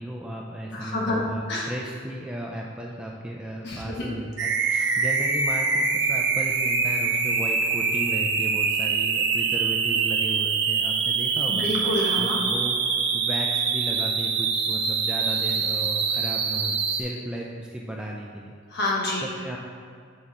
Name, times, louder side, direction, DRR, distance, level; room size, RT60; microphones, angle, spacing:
voice 1, 0.0-11.7 12.2-18.5 19.2-19.6, right 1 dB, 5° right, -2 dB, 0.3 m, -35 dB
voice 2, 0.7-1.2 1.5-1.7 3.6-4.1 4.7-5.0 11.5-12.4 18.7-19.2, left 1 dB, 55° left, -4 dB, 1.2 m, -28 dB
sound 1, 4.4-17.0, right 5 dB, 55° right, 0.5 m, -24 dB
6.4 x 3.7 x 4.1 m, 2.1 s
head